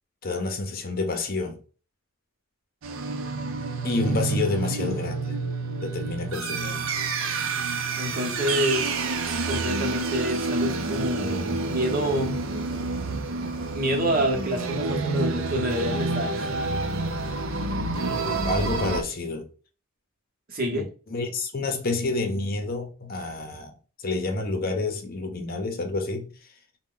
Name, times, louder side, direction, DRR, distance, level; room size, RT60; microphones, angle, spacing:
voice 1, 0.2-1.6 3.8-5.2 5.8-6.9 18.4-19.5 20.7-23.8 24.0-26.3, left 3 dB, 45° left, 0.7 m, -29 dB
sound 1, 2.8-19.0, right 3 dB, 75° right, 0.6 m, -28 dB
voice 2, 4.6-5.0 8.0-12.3 13.7-16.5 20.5-20.9, equal, 45° right, 0.9 m, -28 dB
4.2 x 2.2 x 3.8 m
head